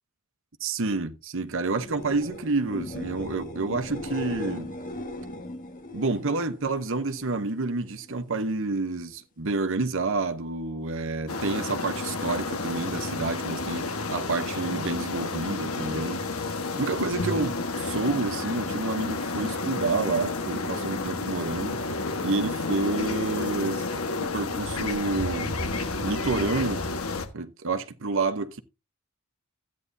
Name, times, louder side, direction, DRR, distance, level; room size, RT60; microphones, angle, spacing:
voice 1, 0.6-4.7 5.9-21.8 22.2-23.8 24.2-25.6 26.0-26.9 27.3-28.6, right 3 dB, 65° right, 0.9 m, -29 dB
sound 1, 1.7-7.4 7.8-8.4 15.4-15.5, left 1 dB, 40° left, 1.7 m, -38 dB
sound 2, 11.3-27.3, left 3 dB, 75° left, 1.4 m, -31 dB
13.5 x 9.4 x 2.7 m
head